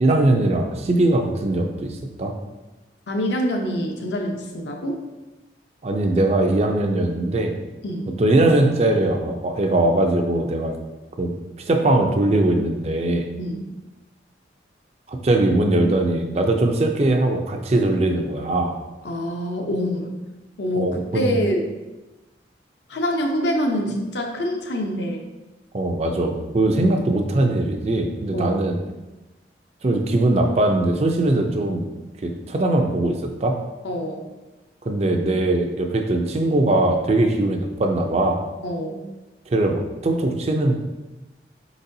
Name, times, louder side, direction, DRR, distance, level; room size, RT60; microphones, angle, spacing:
voice 1, 0.0-2.3 5.8-7.6 8.2-10.8 11.2-11.3 11.7-13.3 15.1-18.7 20.8-21.4 25.7-28.8 29.8-31.9 32.2-33.6 34.9-38.4 39.5-40.7, right 2 dB, 35° right, 4 dB, 0.4 m, -20 dB
voice 2, 3.1-5.0 7.8-8.1 13.4-13.6 19.0-20.2 20.6-21.7 22.9-25.2 28.3-28.6 33.8-34.3 38.6-39.0, equal, 70° left, 2 dB, 0.7 m, -25 dB
4.4 x 4.0 x 2.7 m, 1.1 s
head